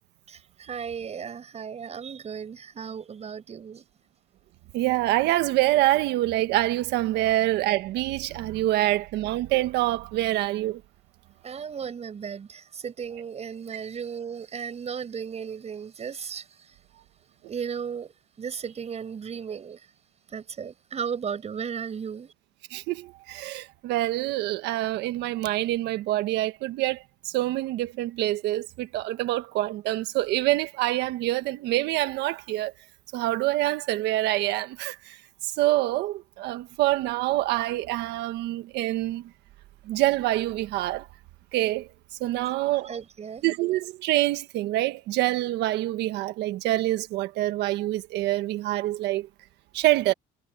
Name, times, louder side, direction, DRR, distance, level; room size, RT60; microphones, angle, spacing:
voice 1, 0.3-3.8 7.2-7.3 11.4-16.8 17.5-19.9 20.3-22.3 42.5-42.6 42.8-43.5, right 7 dB, 40° right, 7.0 m, -35 dB
voice 2, 4.7-10.8 22.7-32.7 33.1-35.2 35.4-39.2 39.9-41.1 41.5-41.9 42.2-42.9 43.4-49.3 49.7-50.1, right 16 dB, 85° right, 1.4 m, -26 dB
cardioid pair, 110°, 17 cm